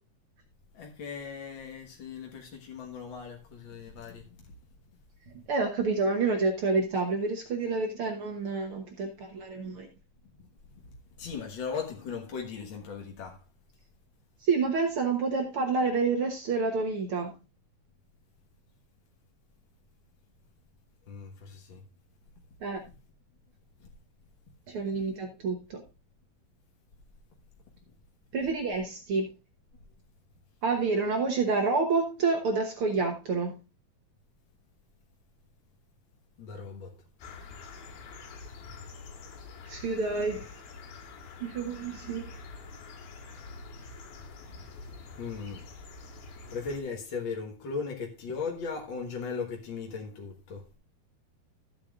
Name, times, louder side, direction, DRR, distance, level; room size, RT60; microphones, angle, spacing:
voice 1, 0.7-4.5 10.7-13.4 21.1-21.8 23.8-23.9 36.4-36.9 45.2-45.8 46.5-50.7, left 5 dB, 55° left, 1.3 m, -38 dB
voice 2, 5.5-9.9 14.4-17.3 22.6-22.8 24.7-25.8 28.3-29.3 30.6-33.6 39.6-40.6 41.4-42.3, right 4 dB, 75° right, 1.2 m, -28 dB
sound 1, 37.2-46.8, left 4 dB, 85° left, 3.5 m, -46 dB
14.0 x 8.5 x 2.4 m
omnidirectional pair, 4.2 m